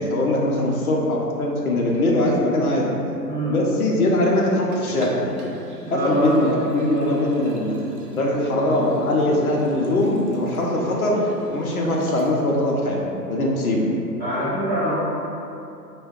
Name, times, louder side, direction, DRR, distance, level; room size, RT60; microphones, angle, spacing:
voice 1, 0.0-2.9 3.5-5.3 5.9-7.7 8.1-11.1 11.5-13.9, left 1 dB, 60° left, -2 dB, 0.6 m, -21 dB
voice 2, 3.2-3.6 5.8-6.3 14.2-14.9, right 1 dB, 5° left, -22 dB, 0.5 m, -25 dB
Liquid, 4.7-12.4 12.8-12.9, right 2 dB, 60° right, 0.7 m, -36 dB
2.5 x 2.2 x 3.6 m, 2.8 s
figure-of-eight pair, 130°, 50 cm